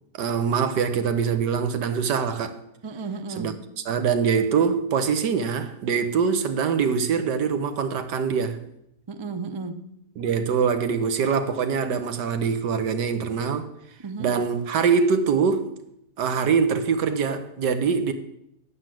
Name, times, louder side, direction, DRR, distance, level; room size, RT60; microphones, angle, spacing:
voice 1, 0.2-2.6 3.4-3.6 3.9-8.6 10.2-13.7 14.2-15.7 16.2-18.1, right 6 dB, 90° right, 1.6 m, -23 dB
voice 2, 2.8-3.6 9.1-10.0 14.0-14.4, right 4 dB, 45° right, 0.3 m, -34 dB
9.8 x 8.3 x 7.6 m
omnidirectional pair, 1.8 m